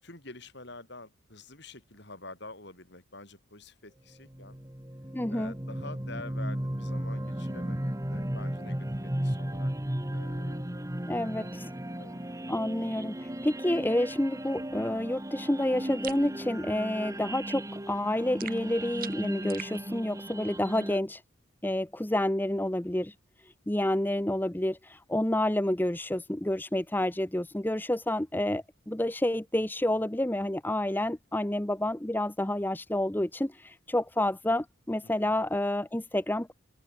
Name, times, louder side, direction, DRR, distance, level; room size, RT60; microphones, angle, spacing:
voice 1, 0.0-4.5 5.3-9.7 10.1-10.8 11.1-11.5 12.0-12.2 25.1-25.2 35.0-35.3, left 2 dB, 55° left, 6.7 m, -47 dB
sound 1, 4.3-21.0, right 1 dB, 15° right, 1.4 m, -35 dB
voice 2, 5.1-5.5 11.1-11.7 12.5-21.2 21.6-23.1 23.7-36.5, left 1 dB, 10° left, 0.7 m, -29 dB
sound 2, 16.0-16.3 18.4-19.8, right 9 dB, 45° right, 7.7 m, -42 dB
open air
head